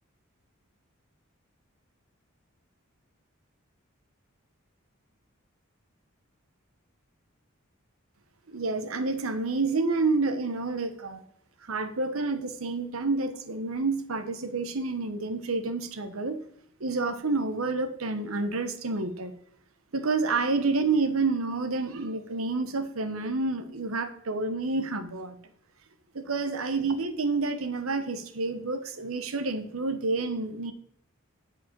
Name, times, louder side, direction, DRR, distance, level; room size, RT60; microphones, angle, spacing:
voice 1, 8.5-11.2 11.7-16.4 16.8-19.3 19.9-25.4 26.1-30.7, right 3 dB, 80° right, 10 dB, 1.0 m, -29 dB
8.7 x 5.0 x 7.4 m, 0.66 s
head